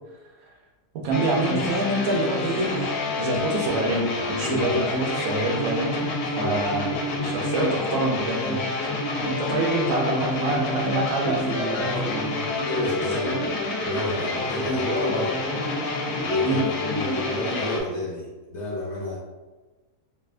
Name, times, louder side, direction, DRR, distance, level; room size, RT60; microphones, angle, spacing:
voice 1, 0.9-6.1 6.4-8.6 9.2-12.6 13.2-13.4 16.4-16.7, right 2 dB, 70° right, -1 dB, 1.0 m, -27 dB
sound 1, 1.1-17.8, left 2 dB, 80° left, 1.1 m, -28 dB
voice 2, 4.4-4.8 6.4-7.4 11.6-15.4 16.2-19.2, left 1 dB, 55° left, -5 dB, 0.9 m, -30 dB
3.4 x 2.4 x 2.4 m, 1.2 s
omnidirectional pair, 1.6 m